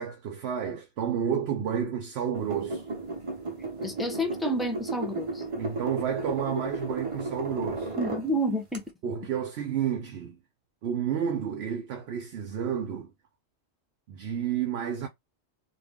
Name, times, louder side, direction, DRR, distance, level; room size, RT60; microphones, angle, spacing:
voice 1, 0.0-2.8 5.6-7.9 9.0-10.4 10.8-13.1 14.1-15.1, right 8 dB, 70° right, 0.8 m, -30 dB
sound 1, 2.3-8.3 8.7-8.8, right 2 dB, 30° right, 0.7 m, -34 dB
voice 2, 3.8-5.4 8.0-8.8, equal, ahead, 0.4 m, -29 dB
2.7 x 2.6 x 3.5 m
omnidirectional pair, 1.2 m